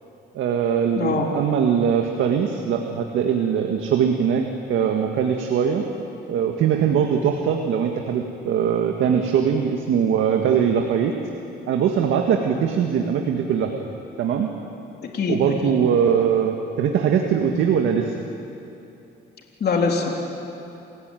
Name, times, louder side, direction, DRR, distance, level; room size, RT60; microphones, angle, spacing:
voice 1, 0.3-5.8 6.3-11.1 11.7-13.7 14.2-14.5 15.3-18.1, right 7 dB, 80° right, 3 dB, 1.8 m, -21 dB
voice 2, 1.0-1.3 15.1-15.8 19.6-20.2, left 4 dB, 55° left, 0 dB, 3.7 m, -23 dB
28.5 x 16.5 x 9.2 m, 2.9 s
cardioid pair, 90°, 20 cm